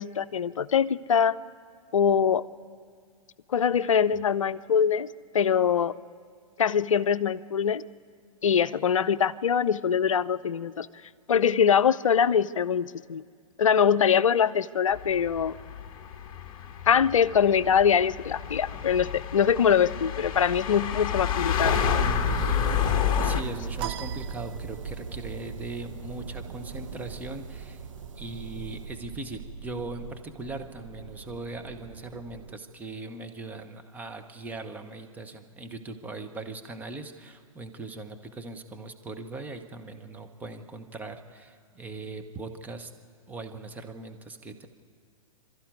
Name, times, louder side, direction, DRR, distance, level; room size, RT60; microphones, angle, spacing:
voice 1, 0.0-1.4 1.9-2.4 3.5-5.1 5.3-5.9 6.6-7.8 8.4-10.9 11.3-13.2 13.6-15.5 16.9-21.8, left 7 dB, 65° left, 15 dB, 0.6 m, -23 dB
sound 1, 14.9-23.4, left 9 dB, 25° left, 1.4 m, -29 dB
sound 2, 21.6-32.6, right 5 dB, 60° right, 1.5 m, -38 dB
voice 2, 23.2-27.9 28.2-42.9 43.3-44.7, right 2 dB, 10° right, 5 dB, 1.2 m, -40 dB
sound 3, 23.8-25.2, right 12 dB, 25° right, 0.6 m, -39 dB
28.0 x 13.5 x 9.4 m, 2.1 s
figure-of-eight pair, 110°, 18 cm